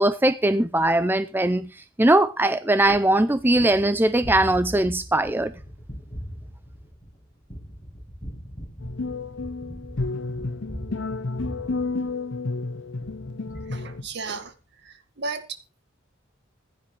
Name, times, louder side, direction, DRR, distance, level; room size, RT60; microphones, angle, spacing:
voice 1, 0.0-1.7 2.0-5.5, right 1 dB, 10° right, 0.6 m, -20 dB
Gunshot gunfire, 2.9-12.6 13.0-14.4, equal, 20° left, 5.1 m, -40 dB
sound 1, 8.8-14.0, left 3 dB, 65° left, 0.8 m, -31 dB
voice 2, 13.7-14.5 14.8-15.4, right 4 dB, 60° right, 2.0 m, -34 dB
15.5 x 11.0 x 3.4 m
head